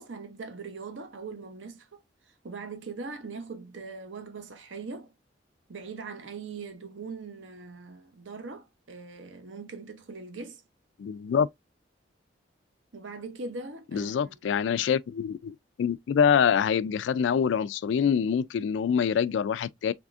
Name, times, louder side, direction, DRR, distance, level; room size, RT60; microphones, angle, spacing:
voice 1, 0.0-2.0 2.4-5.1 5.7-10.6 12.9-14.6, right 4 dB, 85° right, 0.8 m, -41 dB
voice 2, 11.0-11.5 13.9-19.9, left 7 dB, 75° left, 0.3 m, -25 dB
3.5 x 3.4 x 2.4 m
head